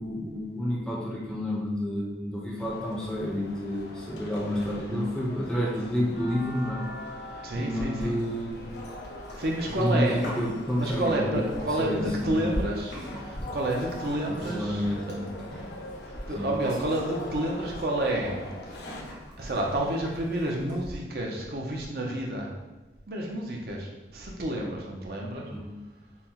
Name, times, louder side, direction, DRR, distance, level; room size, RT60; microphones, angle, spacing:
voice 1, 0.0-6.9 7.5-8.5 9.7-12.4 14.3-15.4 16.4-16.5 25.5-25.7, equal, 5° left, -3 dB, 0.5 m, -30 dB
sound 1, 2.6-19.0, left 1 dB, 70° left, 0.5 m, -42 dB
voice 2, 7.4-8.2 9.4-10.2 10.7-14.8 16.1-18.4 19.4-22.5 23.1-25.5, right 1 dB, 60° right, -1 dB, 0.6 m, -30 dB
Livestock farm animals working animals, 8.5-21.0, equal, 85° left, 1.2 m, -42 dB
5.5 x 2.1 x 2.9 m, 1.1 s
head